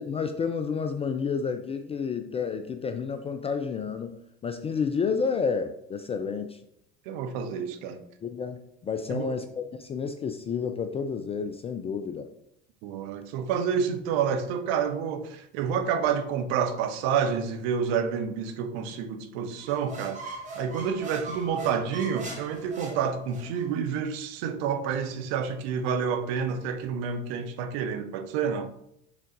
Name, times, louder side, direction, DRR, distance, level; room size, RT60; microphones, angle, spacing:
voice 1, 0.0-4.2 4.4-6.6 8.2-12.3, left 5 dB, 15° left, 0.3 m, -30 dB
voice 2, 7.1-8.0 9.1-9.3 12.8-28.7, right 7 dB, 55° right, 0.9 m, -29 dB
sound 1, 19.6-23.7, right 2 dB, 20° right, 2.1 m, -40 dB
6.3 x 3.9 x 3.9 m
figure-of-eight pair, 75°, 37 cm